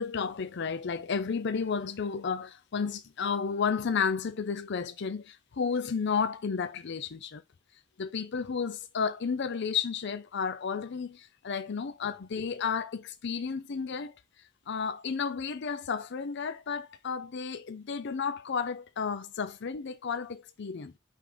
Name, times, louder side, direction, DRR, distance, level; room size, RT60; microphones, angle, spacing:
voice 1, 0.0-7.4 8.0-14.1 14.7-20.9, left 6 dB, 55° left, 0.5 m, -32 dB
5.6 x 3.5 x 5.0 m
head